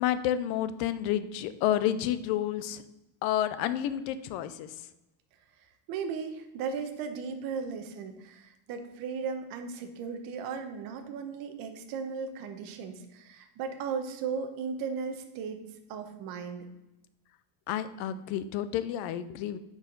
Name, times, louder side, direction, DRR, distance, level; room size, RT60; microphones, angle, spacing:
voice 1, 0.0-2.8 3.2-4.7 17.7-19.6, left 11 dB, 50° left, 13 dB, 0.5 m, -30 dB
voice 2, 5.6-16.7, right 5 dB, 45° right, 6 dB, 1.0 m, -36 dB
6.4 x 4.8 x 5.2 m, 0.95 s
cardioid pair, 175°, 49 cm